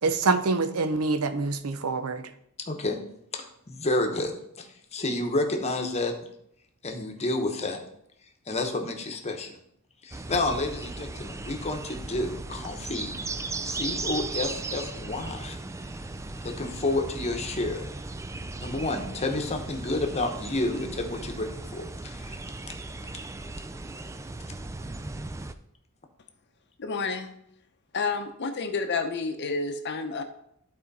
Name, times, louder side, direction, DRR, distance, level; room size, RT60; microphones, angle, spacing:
voice 1, 0.0-2.3, right 3 dB, 70° right, 11 dB, 0.6 m, -26 dB
voice 2, 2.6-3.0 3.3-4.3 4.6-6.1 6.8-7.8 8.5-9.6 10.0-13.2 13.6-15.6 16.4-17.9 18.6-22.4, left 2 dB, 30° left, 4 dB, 1.0 m, -30 dB
sound 1, 10.1-25.5, right 3 dB, 15° right, 0.3 m, -37 dB
voice 3, 26.8-27.3 27.9-30.2, left 4 dB, 50° left, 8 dB, 0.7 m, -29 dB
11.5 x 4.3 x 4.1 m, 0.73 s
head